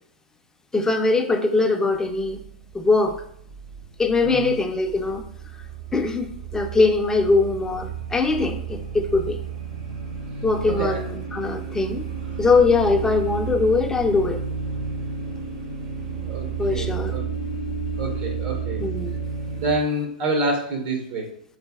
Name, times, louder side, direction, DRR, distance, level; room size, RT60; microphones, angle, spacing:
voice 1, 0.7-2.4 2.7-3.2 4.0-5.2 5.9-9.4 10.4-12.0 12.4-14.4 16.6-17.1 18.8-19.1, left 3 dB, 10° left, 5 dB, 0.5 m, -21 dB
sound 1, 1.9-19.8, right 6 dB, 70° right, 1.5 m, -32 dB
voice 2, 10.7-11.0 16.2-17.3 18.0-18.8 19.5-21.3, right 2 dB, 55° right, 1 dB, 0.9 m, -27 dB
4.0 x 3.9 x 2.3 m, 0.69 s
hypercardioid pair, 110°, 5 cm